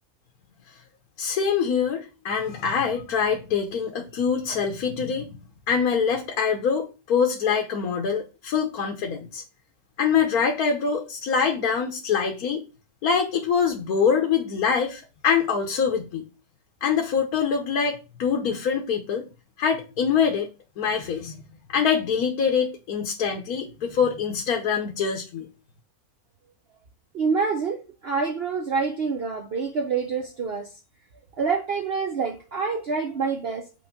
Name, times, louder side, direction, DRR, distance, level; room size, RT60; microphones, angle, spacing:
voice 1, 1.2-5.3 5.7-9.4 10.0-12.6 13.0-16.2 16.8-19.2 19.6-20.5 20.8-21.4 21.7-25.5, left 6 dB, 75° left, 1.4 m, -24 dB
voice 2, 27.1-30.7 31.4-33.7, right 5 dB, 50° right, 0.8 m, -27 dB
6.2 x 3.5 x 5.8 m
omnidirectional pair, 1.6 m